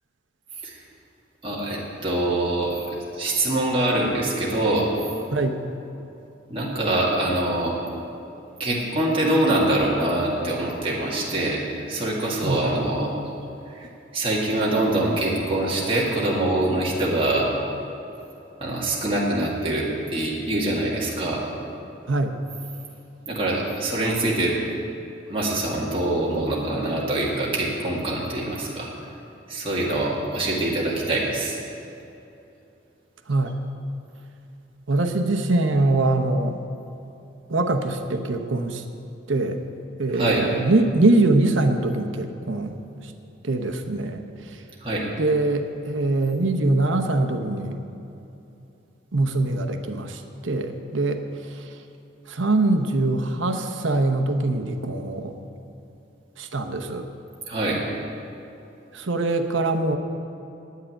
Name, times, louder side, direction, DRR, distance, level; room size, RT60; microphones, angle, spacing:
voice 1, 1.4-2.8 3.1-4.9 6.5-7.8 8.6-13.1 13.7-13.9 14.1-17.5 18.6-21.5 23.3-24.6 25.3-28.9 29.5-31.6 40.1-40.5 44.8-45.1 57.5-57.8, right 1 dB, 30° right, -5 dB, 2.0 m, -24 dB
voice 2, 12.4-12.8 22.1-22.4 33.3-33.5 34.9-36.6 37.5-38.8 39.3-39.6 40.0-42.8 43.4-44.2 45.2-47.8 49.1-51.2 51.5-51.6 52.3-55.3 56.4-57.1 58.9-60.0, right 2 dB, 80° right, 6 dB, 0.9 m, -23 dB
9.5 x 9.1 x 9.9 m, 2.8 s
head